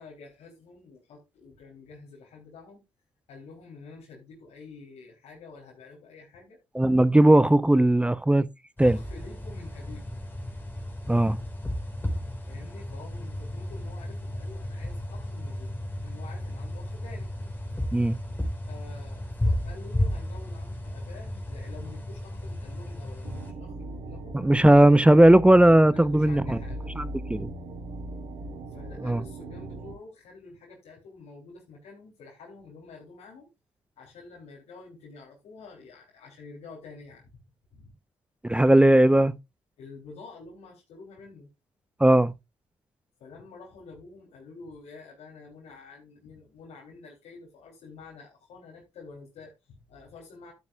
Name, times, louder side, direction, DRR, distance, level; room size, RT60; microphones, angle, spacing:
voice 1, 0.0-2.8 3.3-6.6 8.8-10.2 12.5-15.7 16.0-17.3 18.7-24.5 25.9-26.9 28.7-33.5 34.0-37.4 37.7-37.9 39.8-41.5 43.2-50.5, left 4 dB, 80° left, 3.4 m, -48 dB
voice 2, 6.7-8.5 8.8-9.0 11.1-11.4 17.9-18.2 24.3-26.6 27.3-27.5 29.0-29.2 38.4-39.3 42.0-42.3, right 1 dB, 10° right, 0.8 m, -18 dB
sound 1, 8.8-23.5, left 1 dB, 15° left, 3.9 m, -33 dB
sound 2, 23.2-29.9, right 2 dB, 75° right, 4.8 m, -39 dB
12.0 x 9.5 x 2.4 m
supercardioid pair, 50°, 11 cm